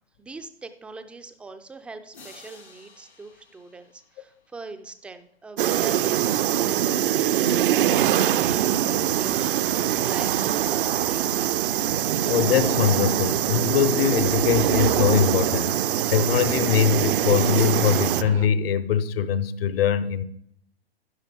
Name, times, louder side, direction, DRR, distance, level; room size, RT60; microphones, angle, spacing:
voice 1, 0.2-7.8 8.0-11.6, right 3 dB, 5° right, 0.3 m, -42 dB
sound 1, 2.1-5.0, left 4 dB, 85° left, 4.5 m, -52 dB
sound 2, 5.6-18.2, right 11 dB, 55° right, 0.5 m, -23 dB
sound 3, 8.4-18.5, right 8 dB, 75° right, 0.8 m, -35 dB
voice 2, 12.3-20.2, left 8 dB, 60° left, 0.8 m, -22 dB
11.0 x 10.5 x 3.5 m
figure-of-eight pair, 110°, 32 cm